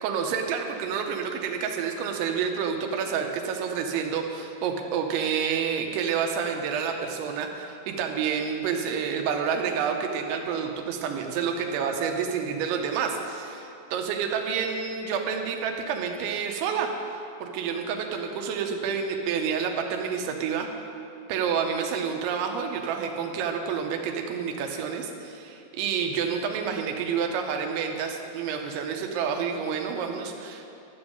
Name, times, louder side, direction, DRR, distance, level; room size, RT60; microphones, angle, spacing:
voice 1, 0.0-20.7 21.3-30.7, right 6 dB, 85° right, 3 dB, 3.2 m, -29 dB
12.0 x 7.1 x 6.6 m, 2.6 s
omnidirectional pair, 5.4 m